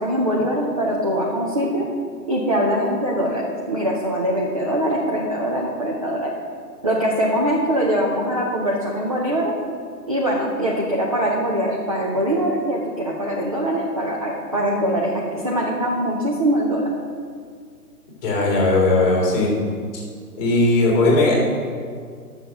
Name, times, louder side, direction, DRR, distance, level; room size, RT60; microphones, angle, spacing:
voice 1, 0.0-1.9 2.3-6.3 6.8-9.5 10.1-16.9, equal, 25° right, -3 dB, 0.5 m, -22 dB
voice 2, 18.2-19.5 20.4-21.3, left 2 dB, 15° left, -3 dB, 2.1 m, -18 dB
7.5 x 6.4 x 6.6 m, 2.1 s
figure-of-eight pair, 135°, 48 cm